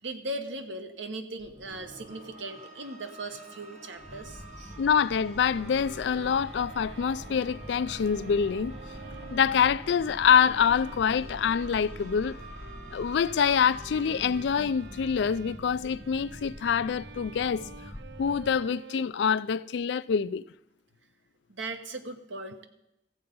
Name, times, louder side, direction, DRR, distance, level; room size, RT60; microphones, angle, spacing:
voice 1, 0.0-4.8 21.5-22.7, right 2 dB, 85° right, 1.2 m, -38 dB
sound 1, 1.4-15.8, right 2 dB, 35° right, 1.4 m, -49 dB
sound 2, 3.9-18.6, equal, 20° left, 1.2 m, -45 dB
voice 2, 4.8-8.8 9.3-12.4 12.9-17.6 18.2-20.4, left 7 dB, 70° left, 0.3 m, -25 dB
Bowed string instrument, 5.5-19.0, right 4 dB, 65° right, 0.4 m, -49 dB
15.0 x 7.8 x 5.3 m
head